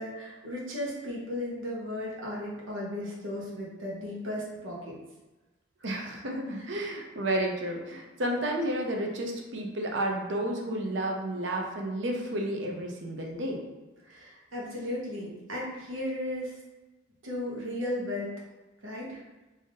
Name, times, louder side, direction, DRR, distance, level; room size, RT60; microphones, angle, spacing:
voice 1, 0.0-5.0 6.5-6.7 14.0-16.6 17.2-18.3 18.8-19.2, left 1 dB, 90° right, -4 dB, 1.1 m, -35 dB
voice 2, 5.8-13.6, right 1 dB, 65° right, 1 dB, 0.7 m, -31 dB
3.4 x 2.6 x 3.6 m, 1.1 s
head